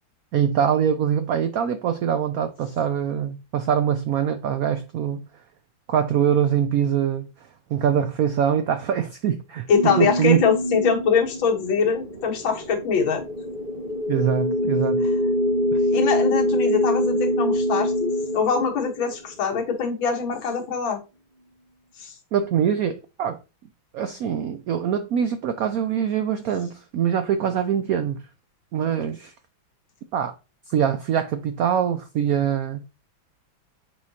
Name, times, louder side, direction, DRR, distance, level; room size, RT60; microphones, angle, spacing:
voice 1, 0.3-5.2 5.9-7.3 7.7-9.7 10.0-10.4 14.1-15.0 15.7-15.8 22.3-23.4 23.9-28.2 28.7-29.3 30.1-30.3 30.7-32.8, right 8 dB, 85° right, 0.7 m, -23 dB
voice 2, 9.7-13.2 15.9-21.0 22.0-22.2, left 6 dB, 75° left, 2.0 m, -23 dB
sound 1, 9.7-19.5, left 1 dB, 30° right, 1.6 m, -25 dB
7.3 x 4.7 x 2.8 m
omnidirectional pair, 2.1 m